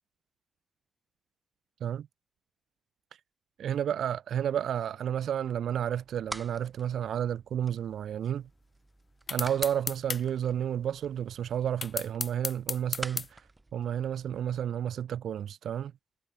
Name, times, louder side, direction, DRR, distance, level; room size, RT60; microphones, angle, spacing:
voice 1, 3.6-8.5 9.3-13.4 13.7-15.9, right 9 dB, 90° right, 0.4 m, -31 dB
sound 1, 5.7-14.6, right 2 dB, 15° right, 4.2 m, -48 dB
sound 2, 9.3-10.2 11.8-13.3, left 4 dB, 40° left, 0.7 m, -33 dB
wide cardioid pair, 125°, 0 cm